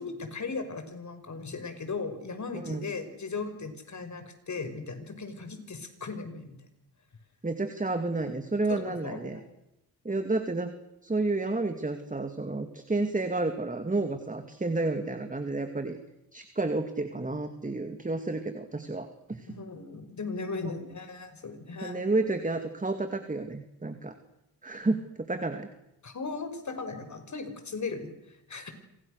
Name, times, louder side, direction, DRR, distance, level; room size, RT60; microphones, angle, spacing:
voice 1, 0.0-6.7 8.7-9.4 19.5-22.1 26.0-28.7, left 4 dB, 50° left, 8 dB, 5.6 m, -37 dB
voice 2, 7.4-9.4 10.0-10.7 11.0-16.0 16.3-19.5 21.8-24.2 24.6-25.7, right 2 dB, 20° right, 7 dB, 2.5 m, -31 dB
29.5 x 26.0 x 6.7 m, 0.86 s
cardioid pair, 90°, 38 cm